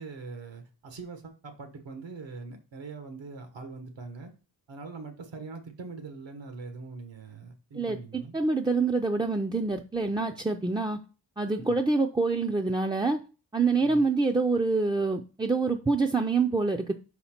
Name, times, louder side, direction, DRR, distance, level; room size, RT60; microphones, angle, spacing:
voice 1, 0.0-4.3 4.7-8.3 11.7-11.8 13.8-14.0, right 4 dB, 80° right, 1.3 m, -42 dB
voice 2, 8.3-11.0 11.4-13.2 13.5-16.9, right 3 dB, 10° right, 0.3 m, -26 dB
5.0 x 4.3 x 5.7 m
wide cardioid pair, 130°, 44 cm